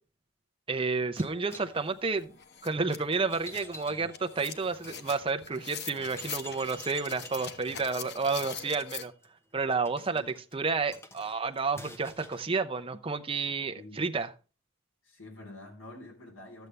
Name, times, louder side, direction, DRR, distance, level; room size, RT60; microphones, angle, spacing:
voice 1, 0.7-2.4 2.6-9.1 9.5-14.3, right 4 dB, 25° right, 0.6 m, -31 dB
sound 1, 1.2-5.0 5.5-5.6 6.0-12.5, equal, 15° left, 0.9 m, -50 dB
sound 2, 1.7-1.8 2.2-9.0, left 7 dB, 55° left, 0.9 m, -43 dB
voice 2, 15.0-16.7, left 2 dB, 80° left, 3.5 m, -47 dB
12.5 x 8.1 x 3.3 m
head